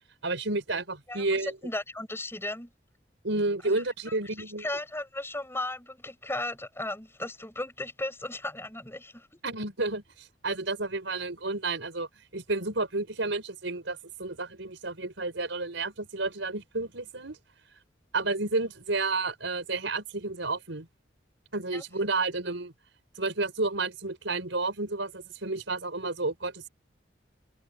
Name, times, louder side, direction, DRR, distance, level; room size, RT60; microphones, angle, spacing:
voice 1, 0.2-1.6 3.2-4.7 9.4-17.4 18.1-20.9 21.5-22.7 23.2-26.7, right 3 dB, 85° right, 5.0 m, -31 dB
voice 2, 1.6-2.7 3.6-3.8 4.1-4.2 4.6-9.3 21.7-21.8, left 2 dB, 15° left, 6.4 m, -36 dB
open air
head